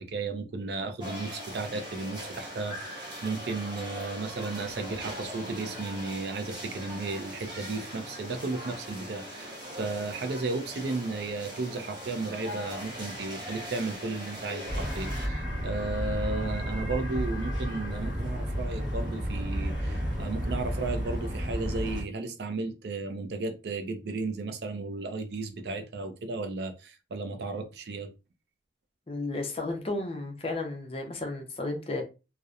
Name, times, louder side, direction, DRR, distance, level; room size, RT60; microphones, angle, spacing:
voice 1, 0.0-28.1, right 3 dB, 60° right, 0.4 m, -34 dB
sound 1, 1.0-15.3, equal, 25° right, 0.7 m, -41 dB
sound 2, 14.7-22.0, equal, 5° right, 1.2 m, -32 dB
voice 2, 29.1-32.0, left 2 dB, 30° left, 0.5 m, -33 dB
2.7 x 2.0 x 2.3 m
head